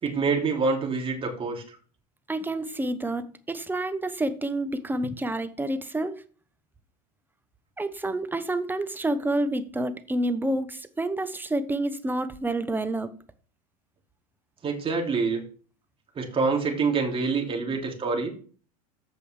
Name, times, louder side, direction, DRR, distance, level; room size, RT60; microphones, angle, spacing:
voice 1, 0.0-1.8 14.6-15.4 16.2-18.3, right 4 dB, 25° right, 2.8 m, -26 dB
voice 2, 2.3-6.2 7.8-13.1 17.7-17.8, right 1 dB, 10° right, 1.0 m, -29 dB
14.0 x 5.2 x 3.4 m
hypercardioid pair, 90°, 21 cm